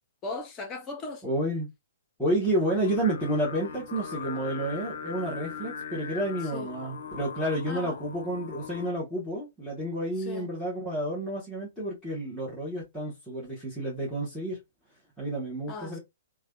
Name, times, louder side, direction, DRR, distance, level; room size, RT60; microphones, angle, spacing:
voice 1, 0.2-1.2 6.5-6.7 7.7-7.9 10.3-10.5 15.7-16.0, left 3 dB, 20° left, 0.8 m, -37 dB
voice 2, 1.2-1.7 2.2-14.6 15.2-16.0, right 1 dB, 5° left, 1.1 m, -30 dB
Singing, 2.8-8.9, left 6 dB, 60° left, 0.5 m, -40 dB
3.2 x 2.2 x 2.3 m
figure-of-eight pair, 115°, 0 cm